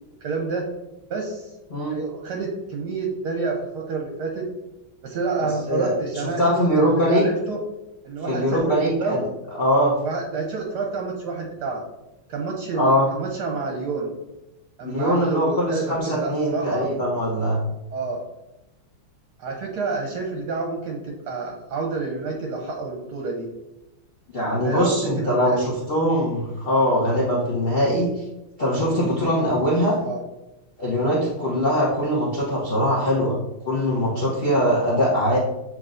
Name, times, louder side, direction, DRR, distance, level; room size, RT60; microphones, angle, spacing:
voice 1, 0.2-0.6 1.1-1.5 1.9-4.5 5.0-7.6 8.0-9.2 10.0-11.8 12.3-14.1 14.8-16.9 17.9-18.2 19.4-23.5 24.6-25.7 30.0-30.2, right 4 dB, 65° right, 1 dB, 1.1 m, -29 dB
voice 2, 5.7-7.3 8.3-9.2 9.5-10.0 12.7-13.1 14.8-17.6 24.3-28.2 28.6-30.0 30.8-33.4 33.6-35.4, equal, 55° left, -6 dB, 0.6 m, -22 dB
7.2 x 2.9 x 2.5 m, 0.96 s
omnidirectional pair, 2.2 m